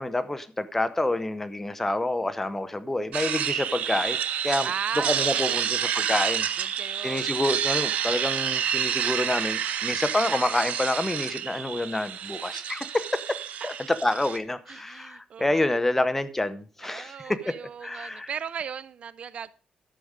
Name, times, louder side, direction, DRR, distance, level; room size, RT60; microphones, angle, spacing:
voice 1, 0.0-4.2 4.4-4.7 5.0-13.4 13.6-17.6 17.8-18.3, left 1 dB, 10° left, 12 dB, 0.8 m, -28 dB
sound 1, 3.1-14.4, right 9 dB, 80° right, 0.8 m, -29 dB
voice 2, 4.4-5.7 6.6-7.3 13.6-13.8 14.7-15.7 16.8-19.5, right 7 dB, 55° right, 18 dB, 0.4 m, -37 dB
11.5 x 7.0 x 5.0 m, 0.37 s
cardioid pair, 120°, 2 cm